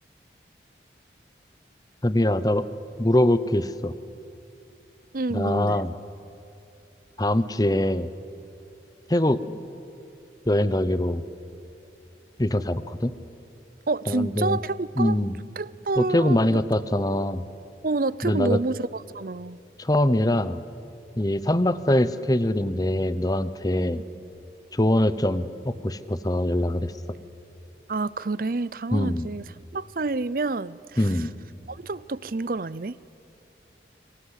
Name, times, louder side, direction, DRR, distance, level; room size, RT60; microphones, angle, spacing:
voice 1, 2.0-2.7 3.0-3.9 5.3-5.9 7.2-8.1 9.1-9.6 10.5-11.2 12.4-13.1 14.1-14.6 15.0-15.4 16.0-17.5 18.2-18.6 19.8-20.6 21.2-24.0 24.7-26.9 28.9-29.3 31.0-31.3, left 1 dB, 20° left, 14 dB, 0.9 m, -23 dB
voice 2, 5.1-5.8 13.9-15.2 15.6-16.6 17.8-19.6 24.1-24.2 27.9-29.4 29.7-31.2 31.7-33.0, right 3 dB, 50° right, 19 dB, 0.6 m, -28 dB
29.0 x 25.0 x 8.2 m, 2.8 s
head